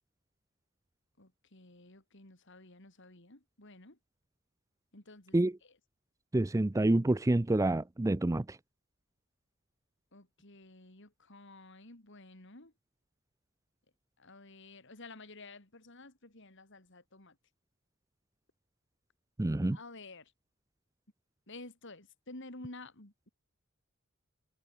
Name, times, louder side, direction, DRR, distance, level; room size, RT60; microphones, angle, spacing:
voice 1, 1.2-4.0 4.9-5.4 10.1-12.7 14.2-17.4 19.7-20.3 21.5-23.3, left 2 dB, 55° left, 3.6 m, -51 dB
voice 2, 6.3-8.6 19.4-19.8, right 1 dB, 15° right, 0.4 m, -28 dB
head